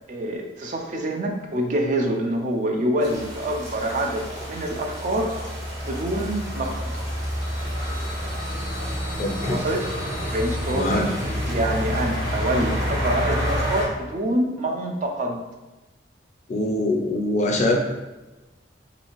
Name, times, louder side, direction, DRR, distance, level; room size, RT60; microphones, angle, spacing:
voice 1, 0.1-5.3 5.8-6.8 9.5-9.8 10.3-11.1 11.5-15.4, right 1 dB, 40° right, 2 dB, 0.4 m, -26 dB
sound 1, 3.0-13.9, equal, 85° right, 1.0 m, -28 dB
sound 2, 6.7-12.2, left 2 dB, 60° right, 1.4 m, -44 dB
voice 2, 9.2-9.6 10.7-11.1 16.5-17.8, left 2 dB, 40° left, 1 dB, 0.4 m, -23 dB
3.1 x 2.6 x 2.9 m, 1.1 s
head